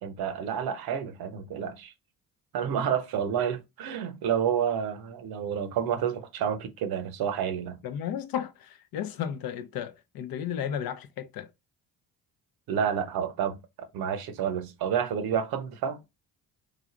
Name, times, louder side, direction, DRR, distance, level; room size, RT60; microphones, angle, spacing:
voice 1, 0.0-1.9 2.5-7.8 12.7-16.0, right 8 dB, 55° right, 0.8 m, -29 dB
voice 2, 7.8-11.5, left 9 dB, 55° left, 0.7 m, -34 dB
3.8 x 3.3 x 2.4 m
hypercardioid pair, 50°, 43 cm